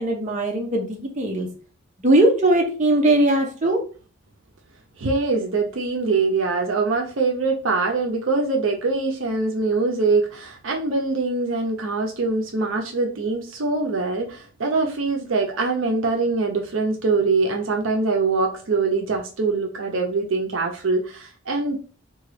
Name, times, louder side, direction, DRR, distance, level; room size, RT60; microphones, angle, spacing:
voice 1, 0.0-1.5 2.0-3.8, right 1 dB, 35° right, 1 dB, 0.7 m, -19 dB
voice 2, 5.0-21.8, right 3 dB, 75° right, 2 dB, 0.6 m, -23 dB
3.7 x 2.3 x 3.2 m, 0.38 s
head